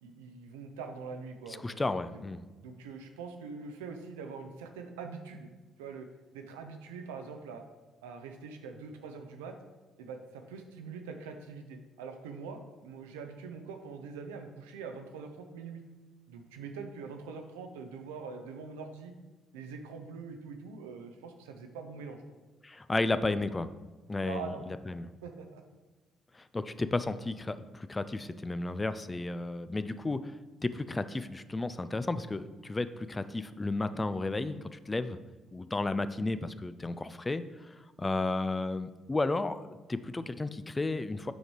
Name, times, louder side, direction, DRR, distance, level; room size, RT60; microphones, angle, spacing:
voice 1, 0.0-2.0 2.6-5.5 5.8-6.1 6.3-7.6 8.0-9.6 10.0-15.8 16.3-19.1 19.5-22.4 24.2-24.6 25.2-25.6, right 5 dB, 80° right, 5 dB, 0.6 m, -43 dB
voice 2, 1.6-2.4 22.6-23.7 24.1-25.1 26.3-30.2 30.6-35.2 35.5-37.4 38.0-41.3, left 2 dB, 25° left, 12 dB, 0.5 m, -33 dB
6.2 x 5.1 x 4.6 m, 1.3 s
hypercardioid pair, 45°, 0 cm